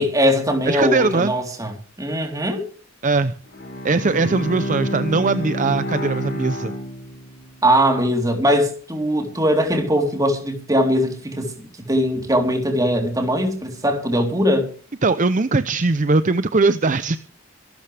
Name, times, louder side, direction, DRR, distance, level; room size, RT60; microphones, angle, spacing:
voice 1, 0.0-1.7 2.0-2.6 7.6-11.5 11.9-14.7, equal, 15° right, 3.7 m, -20 dB
voice 2, 0.7-1.3 3.0-3.3 3.8-6.7 15.0-17.2, right 3 dB, 40° right, 0.6 m, -20 dB
Bowed string instrument, 3.5-7.6, equal, 55° left, 5.4 m, -29 dB
25.0 x 12.5 x 3.4 m
head